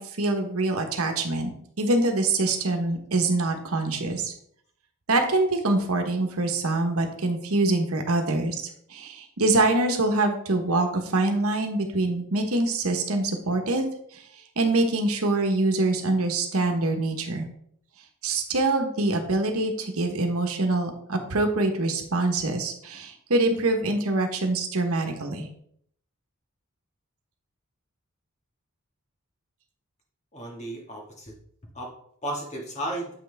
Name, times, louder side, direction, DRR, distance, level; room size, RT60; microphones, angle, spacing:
voice 1, 0.0-1.5 1.8-4.3 5.1-8.6 8.9-13.9 14.6-17.5 18.2-25.5, right 2 dB, 70° right, 4 dB, 1.1 m, -24 dB
voice 2, 30.3-31.3 31.7-31.9 32.2-33.1, right 1 dB, 30° left, -1 dB, 1.7 m, -34 dB
7.9 x 5.9 x 3.4 m, 0.67 s
head